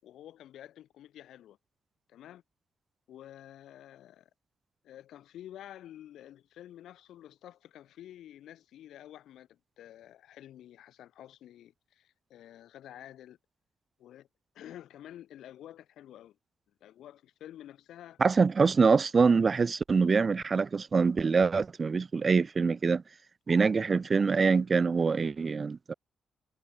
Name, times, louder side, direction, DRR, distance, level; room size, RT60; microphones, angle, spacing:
voice 1, 0.0-1.6 2.1-2.4 3.1-4.3 4.8-13.4 14.0-14.3 14.5-16.4 16.8-18.2, left 12 dB, 85° left, 6.3 m, -50 dB
voice 2, 18.2-23.0 23.5-25.9, right 5 dB, 40° right, 1.4 m, -25 dB
cardioid pair, 75°, 0 cm